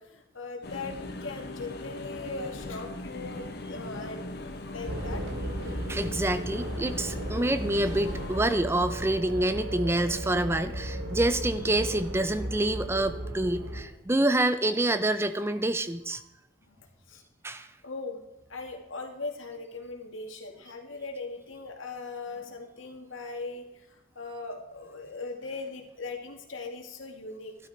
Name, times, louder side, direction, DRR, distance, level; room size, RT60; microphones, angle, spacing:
voice 1, 0.0-5.3 15.4-15.5 16.7-16.8 17.1-17.2 17.8-18.2 18.5-27.6, left 3 dB, 90° left, 2 dB, 2.3 m, -39 dB
sound 1, 0.6-8.6, left 2 dB, 55° left, 1.1 m, -40 dB
sound 2, 4.8-13.8, right 1 dB, 75° right, 2.3 m, -35 dB
voice 2, 5.9-16.2 17.4-17.7, right 1 dB, 15° right, 11 dB, 0.5 m, -27 dB
13.0 x 12.0 x 4.4 m, 0.93 s
head